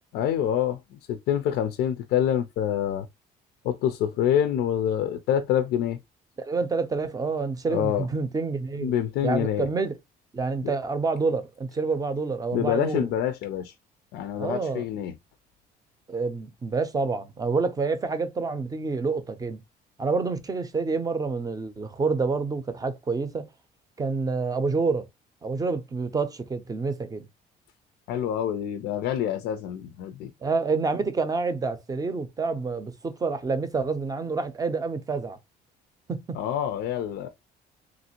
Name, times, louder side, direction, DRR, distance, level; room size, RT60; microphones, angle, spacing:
voice 1, 0.1-3.1 3.6-6.0 7.7-8.1 8.8-9.7 10.6-10.7 12.5-13.7 14.1-15.1 28.1-30.3 36.4-37.3, left 10 dB, 80° left, 0.4 m, -26 dB
voice 2, 6.5-8.9 9.2-9.9 10.3-13.1 14.4-14.8 16.1-19.6 20.0-23.5 24.0-25.1 25.4-27.3 30.4-35.4 36.1-36.4, right 4 dB, 20° right, 0.5 m, -28 dB
3.1 x 2.5 x 2.8 m
cardioid pair, 110°, 17 cm